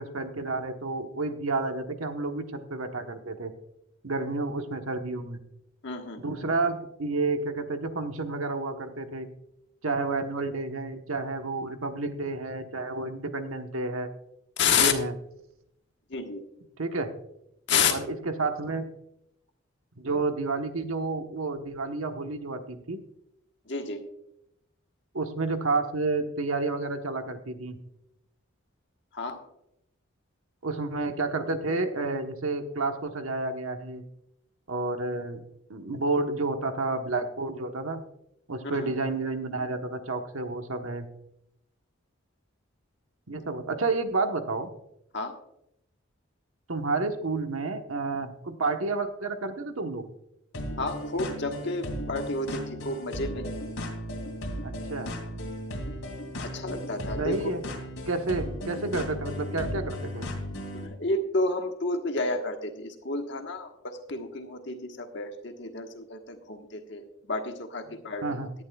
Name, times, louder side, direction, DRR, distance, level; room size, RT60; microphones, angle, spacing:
voice 1, 0.0-3.5 4.0-5.4 6.2-9.3 9.8-14.1 14.7-15.1 16.8-17.2 17.9-18.9 20.0-23.0 25.1-27.8 30.6-34.0 34.7-38.0 38.5-41.1 43.3-44.7 46.7-50.1 54.6-55.1 57.2-57.6 58.1-60.4 68.2-68.5, right 3 dB, 85° right, 6 dB, 1.2 m, -30 dB
voice 2, 5.8-6.2 14.6-14.9 16.1-16.4 17.7-18.0 23.7-24.0 29.1-29.4 38.6-38.9 45.1-45.3 50.8-53.5 56.4-57.5 60.7-68.4, left 4 dB, 55° left, 5 dB, 1.4 m, -30 dB
sound 1, 50.5-60.9, equal, 85° left, 2.6 m, -36 dB
17.0 x 11.0 x 2.3 m, 0.80 s
head